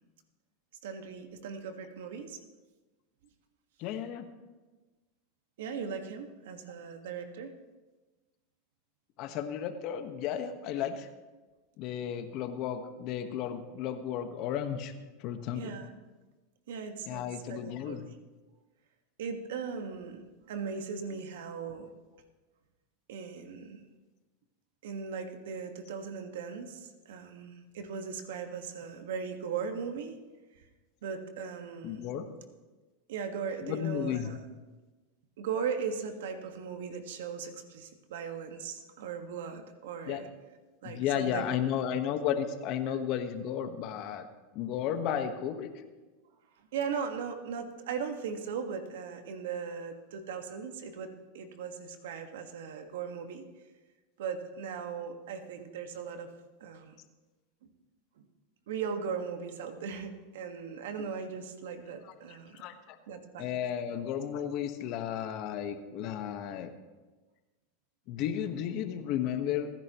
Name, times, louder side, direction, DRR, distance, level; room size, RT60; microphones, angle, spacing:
voice 1, 0.8-2.4 5.6-7.5 15.5-15.9 16.7-18.0 19.2-20.2 20.5-21.9 23.1-23.8 24.8-30.2 30.6-30.7 31.0-32.1 33.1-34.4 35.4-40.2 40.8-41.4 42.9-43.0 46.7-51.1 51.3-53.4 54.2-56.3 56.6-56.9 57.6-57.7 58.2-58.3 58.7-62.6 63.1-63.5, right 6 dB, 80° right, 6 dB, 1.7 m, -38 dB
voice 2, 3.8-4.3 9.2-11.1 11.8-14.9 15.2-15.7 17.1-18.1 31.8-32.2 33.6-34.3 40.1-40.2 40.8-44.3 44.5-45.7 62.5-63.0 63.4-66.7 68.1-69.7, left 9 dB, 50° left, 8 dB, 1.4 m, -33 dB
28.5 x 10.5 x 3.1 m, 1.2 s
supercardioid pair, 115°, 0 cm